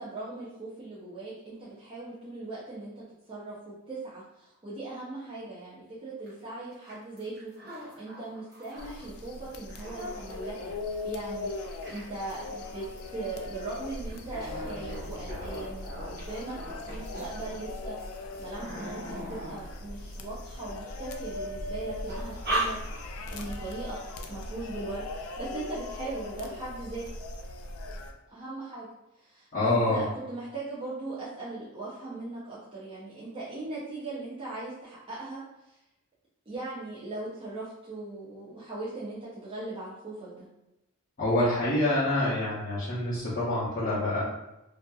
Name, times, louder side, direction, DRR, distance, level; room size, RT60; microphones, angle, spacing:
voice 1, 0.0-7.5 7.8-10.7 11.0-11.5 11.9-16.6 16.8-24.0 24.3-27.0 28.3-28.9 29.2-35.4 35.7-35.8 36.5-40.5, right 2 dB, 25° right, -10 dB, 0.6 m, -39 dB
sound 1, 6.3-6.4 6.6-9.1 9.5-20.9 21.3-21.7 22.0-23.3 23.6-23.7 24.0-24.4, right 1 dB, 45° right, 1.1 m, -39 dB
sound 2, 8.8-28.1, left 2 dB, 70° left, 0.3 m, -39 dB
voice 2, 29.5-30.0 41.2-44.2, left 1 dB, 40° left, -11 dB, 0.7 m, -26 dB
2.6 x 2.4 x 2.3 m, 0.91 s
head